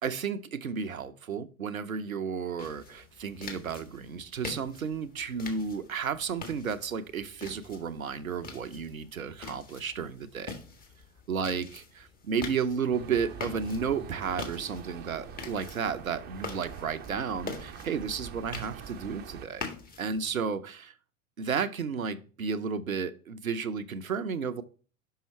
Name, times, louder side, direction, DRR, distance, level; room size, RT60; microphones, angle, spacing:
voice 1, 0.0-10.6 11.3-19.7 20.0-20.9 21.4-24.6, right 6 dB, 85° right, 0.7 m, -33 dB
sound 1, 2.6-20.4, left 4 dB, 20° left, 1.5 m, -45 dB
sound 2, 12.9-19.5, right 6 dB, 25° right, 0.7 m, -44 dB
5.6 x 5.5 x 4.3 m
figure-of-eight pair, 90°, 40 cm